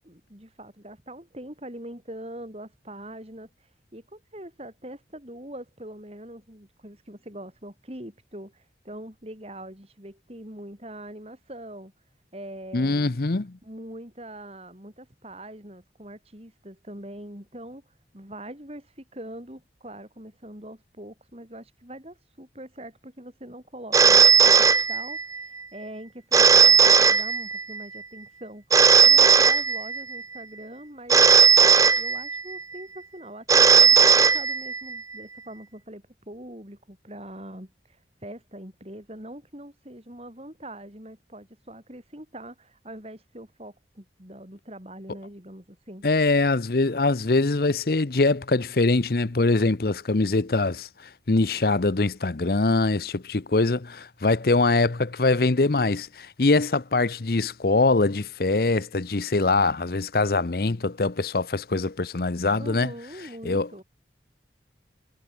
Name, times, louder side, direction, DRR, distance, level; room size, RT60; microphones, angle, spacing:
voice 1, 0.0-3.5 3.9-11.9 12.3-13.1 13.6-17.8 18.1-28.6 29.0-31.2 32.0-46.1 62.6-63.8, right 1 dB, 35° right, 5.6 m, -43 dB
voice 2, 12.7-13.6 46.0-62.9 63.4-63.7, left 3 dB, 55° left, 0.8 m, -23 dB
Telephone, 23.9-25.4 26.3-27.8 28.7-30.2 31.1-32.6 33.5-35.0, right 5 dB, 20° right, 0.5 m, -17 dB
head